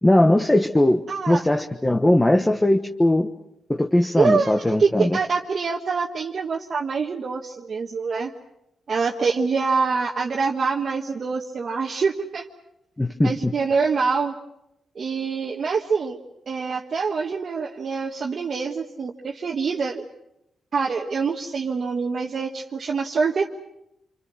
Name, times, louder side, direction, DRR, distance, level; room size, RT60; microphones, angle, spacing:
voice 1, 0.0-3.3 3.7-5.2 13.0-13.5, left 1 dB, 15° left, 4 dB, 1.2 m, -19 dB
voice 2, 1.1-1.4 4.2-8.3 8.9-12.5 13.2-14.3 14.9-20.0 20.7-23.5, right 5 dB, 55° right, -1 dB, 1.5 m, -25 dB
27.0 x 25.5 x 6.3 m, 0.83 s
cardioid pair, 75°, 0 cm